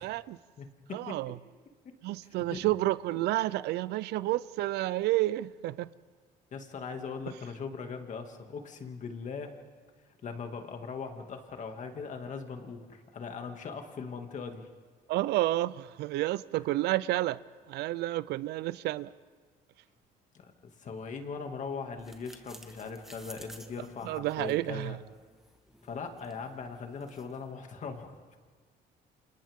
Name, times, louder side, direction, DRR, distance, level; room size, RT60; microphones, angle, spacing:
voice 1, 0.0-0.4 0.9-1.3 2.0-5.9 15.1-17.4 17.7-19.1 24.0-25.0, right 16 dB, 80° right, 0.5 m, -30 dB
voice 2, 0.6-1.2 1.8-2.0 2.5-2.7 6.5-9.5 10.2-14.7 20.3-20.5 20.8-25.0 25.8-28.4, left 5 dB, 45° left, 2.3 m, -40 dB
sound 1, 22.0-27.5, equal, ahead, 1.4 m, -54 dB
30.0 x 27.0 x 3.7 m
cardioid pair, 110°, 17 cm